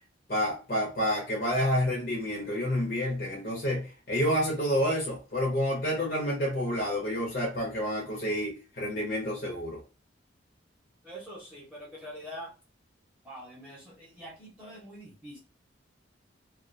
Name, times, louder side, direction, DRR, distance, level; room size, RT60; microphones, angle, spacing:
voice 1, 0.3-9.8, equal, 50° left, -3 dB, 0.7 m, -29 dB
voice 2, 11.0-12.5 13.2-15.4, equal, 10° right, -4 dB, 0.7 m, -44 dB
2.3 x 2.2 x 2.5 m, 0.33 s
head